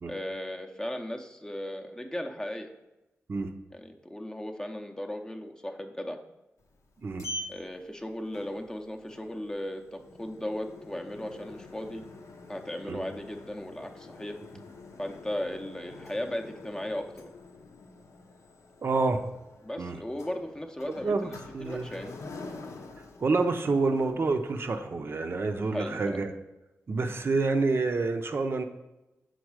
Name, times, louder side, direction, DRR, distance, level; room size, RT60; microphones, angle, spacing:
voice 1, 0.0-2.7 3.7-6.2 7.5-12.0 12.5-14.4 15.0-17.2 19.6-21.3 21.6-22.2 25.6-26.2, left 1 dB, 15° left, 4 dB, 0.6 m, -36 dB
Sliding door, 6.6-24.9, left 2 dB, 80° left, 0.7 m, -46 dB
voice 2, 18.8-19.2 19.8-20.0 21.0-21.9 23.2-26.3 26.9-28.6, right 3 dB, 50° right, 6 dB, 0.5 m, -28 dB
6.3 x 4.0 x 4.7 m, 0.99 s
wide cardioid pair, 85°, 5 cm